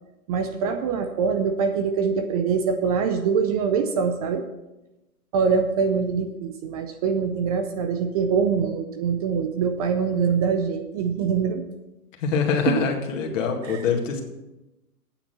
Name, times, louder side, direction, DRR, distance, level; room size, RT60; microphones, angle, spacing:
voice 1, 0.3-4.4 5.3-11.6 12.7-12.8 13.6-13.9, right 6 dB, 25° right, 7 dB, 0.5 m, -24 dB
voice 2, 12.2-14.2, left 5 dB, 55° left, 3 dB, 2.1 m, -24 dB
8.8 x 7.0 x 6.1 m, 1.0 s
hypercardioid pair, 130°, 46 cm